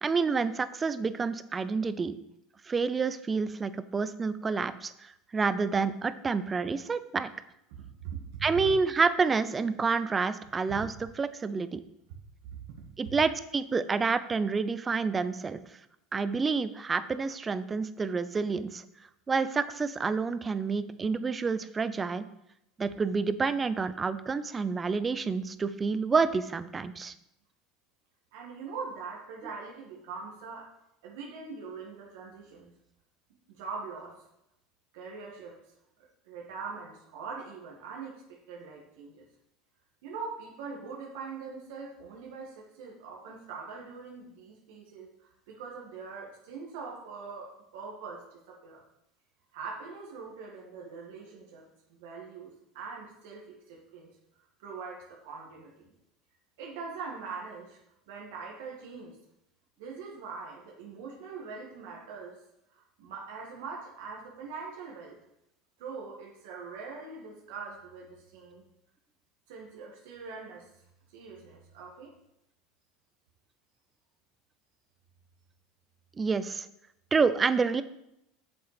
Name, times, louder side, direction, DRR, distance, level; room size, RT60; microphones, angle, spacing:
voice 1, 0.0-2.2 2.7-7.3 8.4-11.8 13.0-15.6 16.1-18.8 19.3-22.2 22.8-27.1 76.2-76.7 77.1-77.8, right 4 dB, 20° right, 14 dB, 0.6 m, -28 dB
voice 2, 7.7-8.6 10.7-10.8 13.1-13.2 28.3-30.7 31.0-32.7 33.6-34.2 34.9-35.6 36.2-39.2 40.0-48.8 49.5-54.1 54.6-55.9 56.6-57.8 58.1-59.2 59.8-62.4 62.7-65.2 65.8-68.6 69.5-70.7 71.1-72.1, right 5 dB, 75° right, -2 dB, 2.0 m, -42 dB
7.9 x 6.9 x 5.2 m, 0.82 s
supercardioid pair, 115°, 0 cm